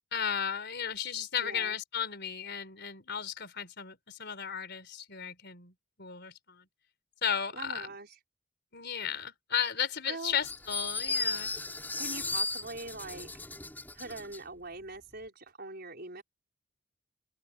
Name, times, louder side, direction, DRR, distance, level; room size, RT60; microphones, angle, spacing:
voice 1, 0.1-5.7 6.0-6.6 7.2-7.9 8.7-11.5, left 7 dB, 50° left, 4.4 m, -34 dB
voice 2, 1.4-1.8 7.5-8.2 10.1-10.4 12.0-13.3 13.9-16.2, right 3 dB, 45° right, 5.6 m, -42 dB
sound 1, 10.4-14.4, left 3 dB, 10° left, 7.3 m, -35 dB
open air
head